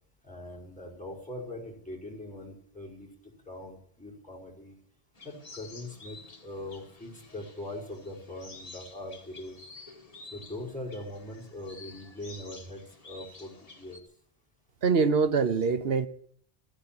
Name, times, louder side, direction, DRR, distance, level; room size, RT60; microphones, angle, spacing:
voice 1, 0.2-4.8 5.2-6.2 6.4-9.6 10.3-14.0, left 1 dB, 5° left, 5.2 m, -41 dB
sound 1, 5.2-14.0, left 3 dB, 35° left, 1.6 m, -50 dB
voice 2, 14.8-16.1, right 5 dB, 60° right, 1.3 m, -24 dB
15.0 x 10.0 x 8.7 m
omnidirectional pair, 1.1 m